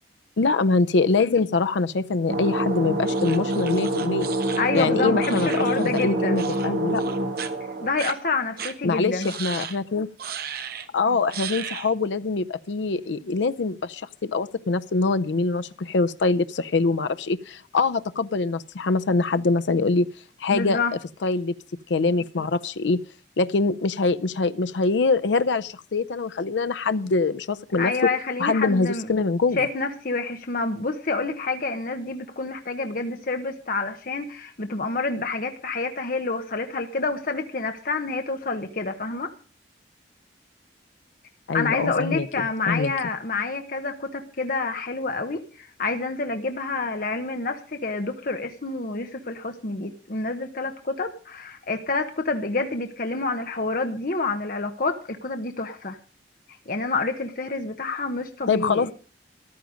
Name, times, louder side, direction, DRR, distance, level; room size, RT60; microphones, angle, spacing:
voice 1, 0.4-7.0 8.8-10.1 10.9-20.1 20.4-20.8 21.2-21.6 21.9-23.0 23.4-27.9 28.4-29.7 41.5-42.9 58.5-58.9, left 3 dB, 80° left, 12 dB, 0.5 m, -24 dB
sound 1, 2.3-7.9, right 1 dB, 85° right, 1.9 m, -26 dB
sound 2, 3.1-6.1 6.4-6.7 7.0-7.5 8.0-8.1 8.6-8.7 9.2-9.8 10.2-10.9 11.3-11.9, right 8 dB, 55° right, 1.2 m, -35 dB
voice 2, 4.5-6.4 7.8-9.3 20.5-20.9 27.8-29.1 29.5-39.3 41.5-56.0 56.7-58.9, left 3 dB, 50° left, 6 dB, 1.0 m, -28 dB
14.5 x 11.5 x 5.1 m, 0.39 s
head